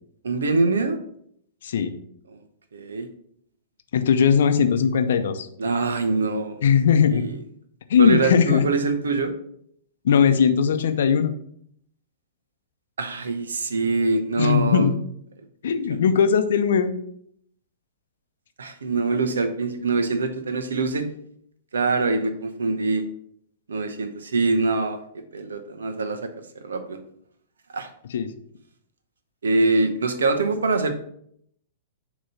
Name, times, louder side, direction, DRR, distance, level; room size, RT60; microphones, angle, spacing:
voice 1, 0.2-1.0 2.3-2.4 2.7-3.1 5.6-6.6 7.1-7.3 8.0-9.3 13.0-14.9 18.6-21.1 21.7-23.0 23.7-26.3 26.6-27.0 27.7-27.9 29.4-30.9, right 3 dB, 80° right, 8 dB, 0.8 m, -24 dB
voice 2, 1.6-1.9 3.9-5.5 6.6-7.3 7.9-8.7 10.0-11.3 14.4-14.9 15.6-16.9 28.1-28.3, left 7 dB, 70° left, 9 dB, 0.6 m, -19 dB
6.5 x 3.0 x 5.6 m, 0.68 s
hypercardioid pair, 110°, 0 cm